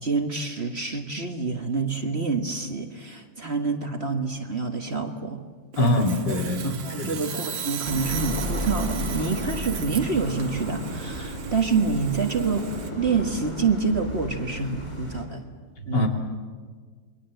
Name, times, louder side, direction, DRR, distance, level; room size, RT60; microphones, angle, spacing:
voice 1, 0.0-5.4 5.8-5.9 6.6-15.4 15.9-16.1, right 4 dB, 35° right, 4 dB, 1.7 m, -27 dB
Sawing, 5.7-12.9, right 8 dB, 80° right, 2.0 m, -37 dB
voice 2, 5.8-7.2 15.9-16.1, left 1 dB, 65° left, 2 dB, 3.5 m, -24 dB
sound 1, 7.8-15.2, equal, 35° left, 5.2 m, -33 dB
29.0 x 22.5 x 7.9 m, 1.5 s
omnidirectional pair, 2.0 m